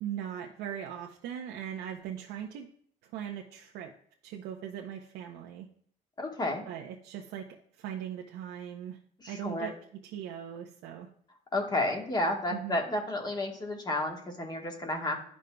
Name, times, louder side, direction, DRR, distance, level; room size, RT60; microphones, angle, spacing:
voice 1, 0.0-2.7 3.0-3.9 4.2-5.7 6.7-9.0 9.3-11.1 12.5-12.8, right 9 dB, 90° right, 1 dB, 0.6 m, -39 dB
voice 2, 6.2-6.6 9.2-9.7 11.5-15.2, left 1 dB, 25° left, 2 dB, 1.4 m, -31 dB
12.0 x 5.2 x 2.2 m, 0.63 s
cardioid pair, 110°, 17 cm